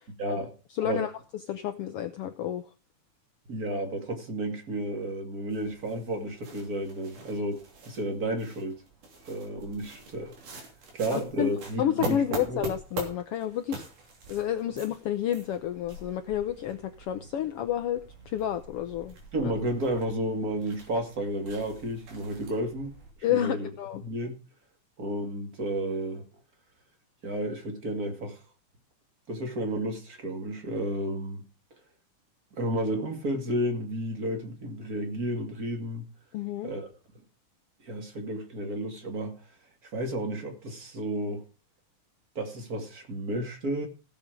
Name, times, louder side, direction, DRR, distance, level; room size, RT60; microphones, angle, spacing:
voice 1, 0.2-0.5 0.8-1.1 3.5-8.8 9.2-10.3 10.9-12.6 19.3-22.9 23.3-23.7 24.0-24.3 25.0-26.2 27.2-28.4 29.3-31.4 32.6-36.0 36.6-36.9 37.8-39.4 39.9-41.4 42.4-43.9, right 1 dB, 30° right, 2.4 m, -32 dB
voice 2, 0.7-1.1 1.5-2.6 11.1-11.5 11.8-13.8 14.3-18.0 18.3-19.2 19.4-19.5 23.2-24.0 36.3-36.7, left 10 dB, 80° left, 1.3 m, -30 dB
sound 1, 5.5-23.1, right 2 dB, 90° right, 4.6 m, -43 dB
16.5 x 7.4 x 5.1 m
omnidirectional pair, 3.5 m